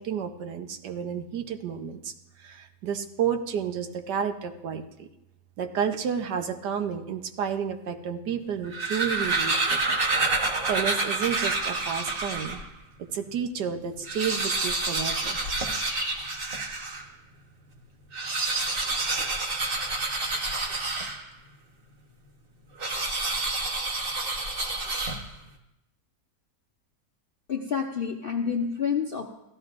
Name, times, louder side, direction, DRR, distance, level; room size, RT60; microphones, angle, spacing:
voice 1, 0.0-2.1 2.4-5.1 5.6-10.0 10.4-12.6 13.1-15.4, right 7 dB, 80° right, 7 dB, 1.4 m, -31 dB
sound 1, 8.5-12.7 13.2-13.3 13.5-13.6 14.0-17.1 18.0-21.5 22.8-25.5, right 3 dB, 35° right, 1.1 m, -28 dB
voice 2, 27.5-29.3, left 6 dB, 60° left, 2 dB, 0.6 m, -28 dB
16.0 x 13.5 x 2.6 m, 0.88 s
omnidirectional pair, 1.8 m